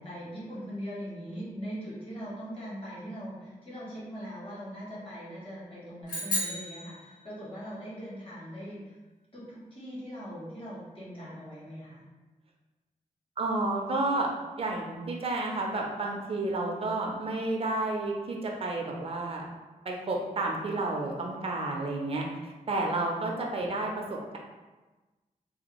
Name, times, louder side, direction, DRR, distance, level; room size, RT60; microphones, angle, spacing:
voice 1, 0.0-9.0 9.3-12.0, equal, 40° left, -8 dB, 1.4 m, -41 dB
sound 1, 6.1-7.7, left 1 dB, 85° left, 1.5 m, -34 dB
voice 2, 13.4-14.3 14.6-19.5 19.8-24.4, right 2 dB, 45° right, 0 dB, 0.4 m, -31 dB
3.3 x 2.2 x 2.9 m, 1.2 s
wide cardioid pair, 155°, 14 cm